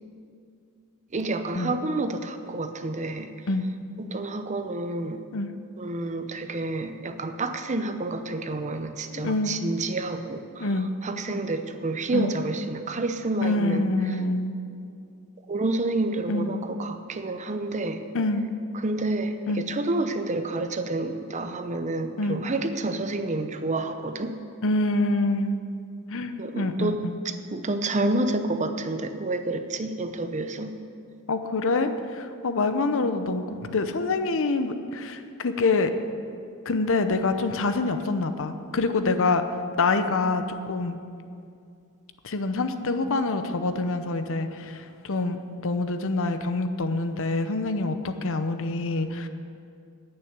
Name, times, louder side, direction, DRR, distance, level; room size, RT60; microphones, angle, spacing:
voice 1, 1.1-3.3 4.0-5.2 5.8-10.7 11.0-13.9 15.5-18.0 18.7-24.4 26.4-30.8, right 2 dB, 35° right, 8 dB, 0.7 m, -29 dB
voice 2, 9.2-9.6 10.6-10.9 12.1-12.4 13.4-14.5 16.3-16.7 18.1-18.5 19.5-19.6 22.2-22.4 24.6-25.6 26.1-27.2 31.3-35.9 36.7-39.4 39.8-41.0 42.2-49.3, left 3 dB, 60° left, 9 dB, 0.8 m, -26 dB
10.5 x 9.0 x 8.1 m, 2.4 s
head